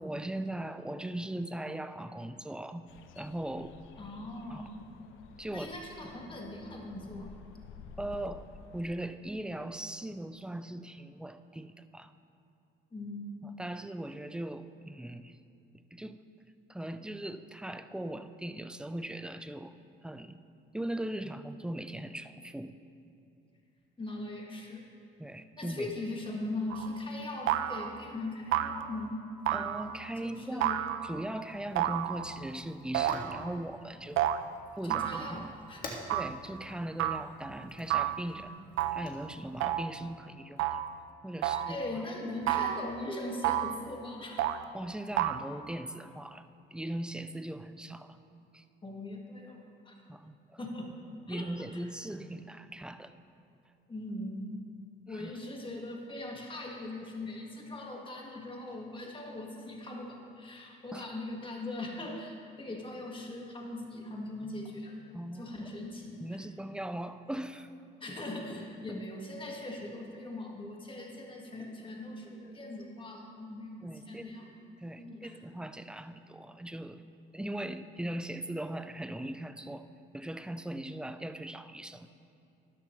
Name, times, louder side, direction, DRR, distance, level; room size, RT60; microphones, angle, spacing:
voice 1, 0.0-2.9 3.2-3.8 4.5-4.7 5.4-5.8 8.0-8.4 8.7-12.1 13.4-15.4 15.9-16.2 16.7-19.8 20.0-20.4 20.7-22.8 25.2-25.9 29.5-30.7 31.0-34.3 34.8-35.5 36.1-38.5 38.9-40.8 41.2-42.1 44.7-46.5 46.7-48.2 48.5-48.6 50.1-50.6 51.3-53.1 55.1-55.3 60.9-61.1 65.1-65.5 66.2-67.7 68.9-69.0 73.8-74.4 74.8-77.1 77.3-79.9 80.1-82.1, right 1 dB, 5° right, 10 dB, 0.4 m, -39 dB
sound 1, 2.9-8.9, left 6 dB, 90° left, 0.6 m, -52 dB
voice 2, 4.0-4.8 5.5-7.3 12.9-13.5 24.0-24.8 25.6-29.3 30.2-30.8 34.8-36.1 38.4-38.5 41.4-44.4 48.8-50.0 50.6-50.9 51.3-51.8 53.9-54.6 55.1-66.4 68.0-74.5 75.0-75.4, left 2 dB, 25° left, 0 dB, 1.8 m, -40 dB
sound 2, 26.7-27.0 27.5-28.0 28.5-29.0 29.5-30.1 30.6-31.2 31.8-32.5 32.9-33.5 34.2-34.4 34.9-35.5 36.1-36.4 37.0-37.3 37.9-38.3 38.8-39.1 39.6-40.0 40.6-41.0 41.4-41.8 42.5-42.9 43.4-43.8 44.4-44.7 45.2-45.4, right 12 dB, 85° right, 0.4 m, -31 dB
Fire, 31.4-39.8, left 1 dB, 45° left, 1.9 m, -50 dB
13.5 x 11.0 x 3.2 m, 2.6 s
cardioid pair, 90°, 20 cm